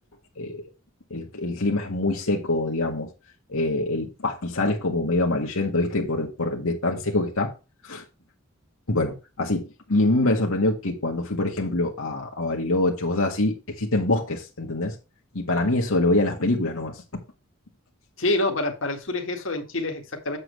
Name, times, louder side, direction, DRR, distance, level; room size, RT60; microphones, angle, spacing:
voice 1, 1.1-3.1 3.5-7.5 7.8-8.0 8.9-14.9 15.3-17.0, left 2 dB, 90° left, 1.8 m, -25 dB
voice 2, 18.2-20.4, left 2 dB, 70° left, 2.0 m, -27 dB
7.9 x 7.7 x 3.4 m
head